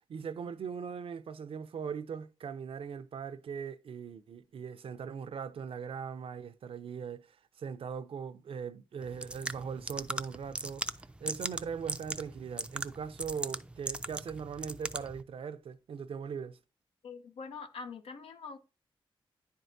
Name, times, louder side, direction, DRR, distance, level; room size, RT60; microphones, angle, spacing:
voice 1, 0.1-16.6, right 6 dB, 75° right, 0.5 m, -40 dB
sound 1, 9.0-15.2, right 2 dB, 10° right, 0.4 m, -39 dB
voice 2, 17.0-18.6, left 5 dB, 90° left, 0.7 m, -44 dB
9.9 x 4.6 x 2.6 m
wide cardioid pair, 100°, 10 cm